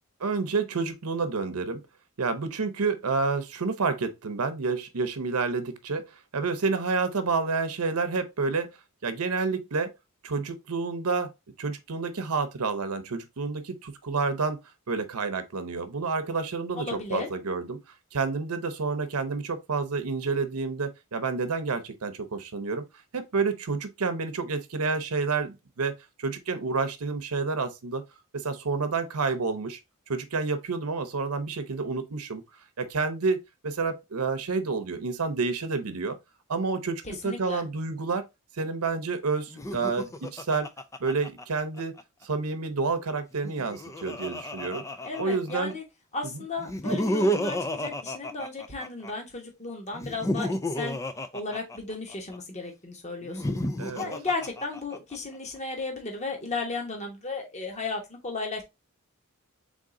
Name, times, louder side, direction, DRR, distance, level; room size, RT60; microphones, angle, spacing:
voice 1, 0.2-1.8 2.2-6.1 6.3-8.7 9.0-9.9 10.2-11.3 11.6-14.6 14.9-17.8 18.1-22.8 23.1-25.9 26.2-28.0 28.3-29.8 30.1-32.4 32.8-36.2 36.5-38.3 38.6-40.7 41.0-41.9 42.2-44.8 45.2-45.8 46.2-46.4 53.8-54.1, right 4 dB, 90° right, 0.8 m, -29 dB
voice 2, 16.7-17.3 37.0-37.6 45.0-45.8 46.1-51.0 51.3-53.6 54.0-58.6, left 3 dB, 30° left, 1.1 m, -34 dB
Laughter, 39.5-42.0 43.3-45.7 46.6-49.1 49.9-52.4 53.2-55.2, equal, 15° left, 0.3 m, -31 dB
3.7 x 3.7 x 3.7 m
head